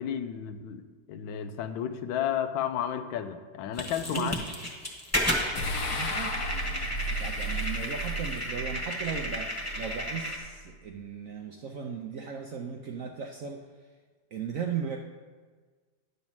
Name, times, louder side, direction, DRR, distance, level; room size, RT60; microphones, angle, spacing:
voice 1, 0.0-4.4, left 9 dB, 90° left, 9 dB, 1.4 m, -32 dB
sound 1, 3.8-10.4, equal, 10° left, 1.0 m, -33 dB
voice 2, 4.0-4.4 5.9-6.4 7.1-13.7 14.3-15.0, right 6 dB, 70° right, 3 dB, 0.7 m, -36 dB
sound 2, 5.6-10.9, equal, 60° left, 1.3 m, -35 dB
10.5 x 4.1 x 7.1 m, 1.5 s
omnidirectional pair, 2.0 m